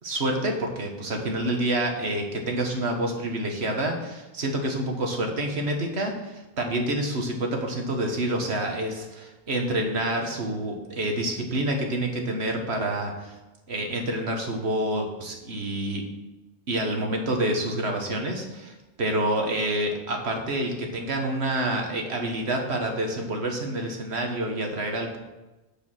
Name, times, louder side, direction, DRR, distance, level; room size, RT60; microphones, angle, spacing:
voice 1, 0.0-13.4 13.7-16.0 16.7-25.2, right 1 dB, 90° right, 2 dB, 1.7 m, -28 dB
7.4 x 7.0 x 6.0 m, 1.1 s
omnidirectional pair, 1.1 m